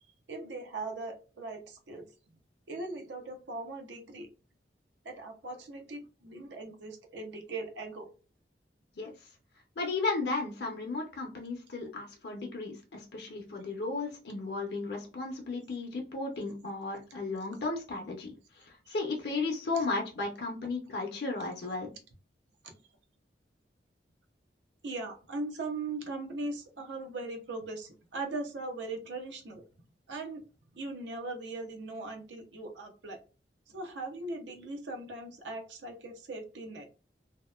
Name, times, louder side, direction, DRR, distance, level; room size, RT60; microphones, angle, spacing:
voice 1, 0.3-2.1 2.7-4.3 5.0-8.1 22.6-22.7 24.8-29.6 30.1-30.4 30.7-33.2 33.7-36.8, right 2 dB, 90° right, 4 dB, 0.6 m, -39 dB
voice 2, 9.0-9.3 9.8-21.9, left 3 dB, 65° left, 1 dB, 0.6 m, -35 dB
2.8 x 2.1 x 2.2 m, 0.34 s
head